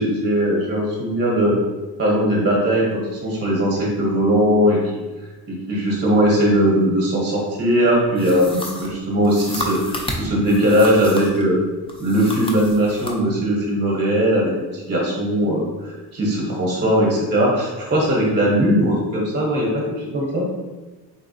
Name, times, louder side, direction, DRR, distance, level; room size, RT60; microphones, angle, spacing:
voice 1, 0.0-1.6 2.0-4.8 5.7-11.6 12.0-20.4, equal, 30° right, -3 dB, 0.8 m, -19 dB
sound 1, 8.2-11.5 11.9-13.2, left 1 dB, 15° left, 0.3 m, -31 dB
4.1 x 3.4 x 2.6 m, 1.2 s
cardioid pair, 170°, 36 cm